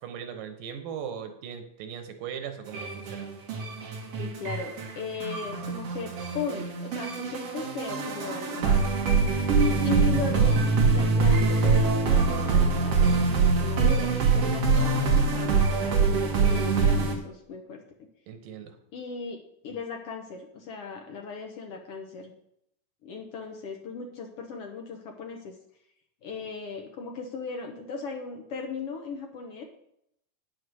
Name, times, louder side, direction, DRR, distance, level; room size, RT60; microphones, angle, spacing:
voice 1, 0.0-3.3 18.3-18.8, right 8 dB, 90° right, 8 dB, 2.7 m, -38 dB
sound 1, 2.7-17.2, right 4 dB, 55° right, 2.3 m, -24 dB
voice 2, 4.2-8.8 9.8-10.6 10.9-17.8 18.9-19.4 19.6-22.3 23.0-25.5 26.2-29.6, left 4 dB, 70° left, 2 dB, 1.4 m, -37 dB
9.6 x 6.5 x 6.2 m, 0.75 s
omnidirectional pair, 3.9 m